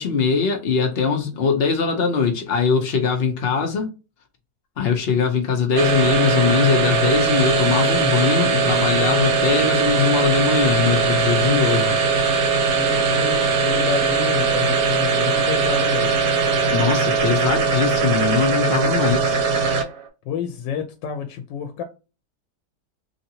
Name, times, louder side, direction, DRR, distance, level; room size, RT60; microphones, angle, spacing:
voice 1, 0.0-3.9 4.8-11.9 16.7-19.4, left 6 dB, 60° left, 0.6 m, -21 dB
sound 1, 5.8-20.1, right 5 dB, 65° right, 1.2 m, -20 dB
voice 2, 12.7-16.2 20.3-21.8, left 7 dB, 90° left, 1.2 m, -29 dB
3.0 x 2.7 x 2.7 m
omnidirectional pair, 1.9 m